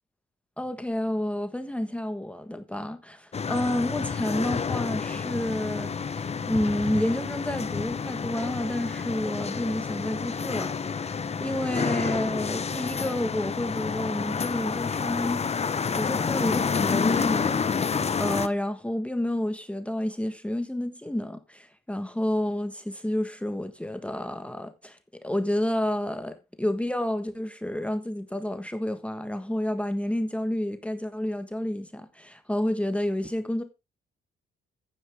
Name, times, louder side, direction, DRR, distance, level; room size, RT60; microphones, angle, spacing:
voice 1, 0.6-33.6, left 1 dB, 5° left, 1.5 m, -30 dB
sound 1, 3.3-18.5, left 5 dB, 30° left, 0.9 m, -29 dB
11.5 x 9.4 x 3.5 m
cardioid pair, 90°, 20 cm